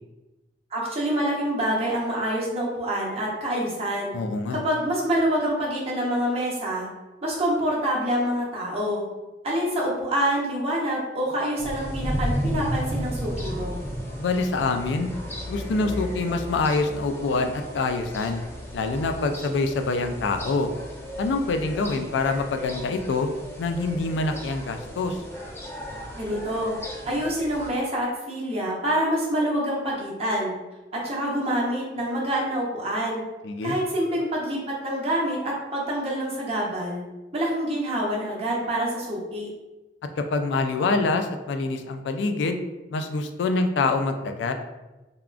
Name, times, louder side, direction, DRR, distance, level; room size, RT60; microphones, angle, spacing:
voice 1, 0.7-4.1 4.5-6.9 7.2-9.0 9.4-13.8 26.2-26.8 27.1-30.5 30.9-33.2 33.6-37.0 37.3-39.5, equal, 35° right, -4 dB, 0.8 m, -26 dB
voice 2, 4.1-4.6 14.2-15.1 15.5-18.4 18.7-20.7 21.2-23.3 23.6-25.2 33.4-33.8 40.2-42.6 42.9-44.5, left 3 dB, 80° left, 7 dB, 0.3 m, -25 dB
sound 1, 11.6-27.7, equal, 15° left, 0.4 m, -34 dB
3.4 x 2.3 x 2.4 m, 1.1 s
head